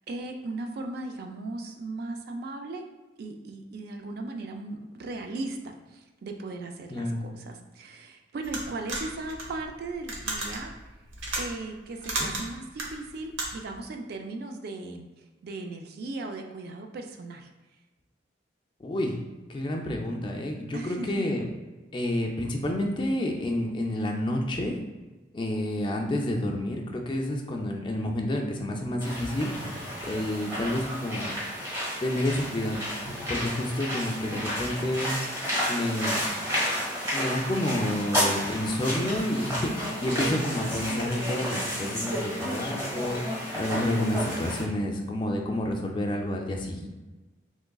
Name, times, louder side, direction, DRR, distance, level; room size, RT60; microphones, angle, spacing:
voice 1, 0.1-2.8 3.2-10.7 11.4-17.5 20.7-21.2 30.1-30.8 34.1-34.3, right 2 dB, 55° right, 4 dB, 0.3 m, -37 dB
voice 2, 6.9-7.2 12.2-12.3 18.8-19.2 19.5-21.4 21.9-24.8 25.3-31.3 32.0-32.9 33.3-35.2 35.7-36.3 37.1-46.9, left 1 dB, 25° left, 1 dB, 0.3 m, -29 dB
sound 1, 8.4-13.8, right 2 dB, 90° right, 0.7 m, -34 dB
sound 2, 29.0-44.6, equal, 15° right, 1.1 m, -31 dB
3.5 x 3.0 x 2.2 m, 1.2 s
head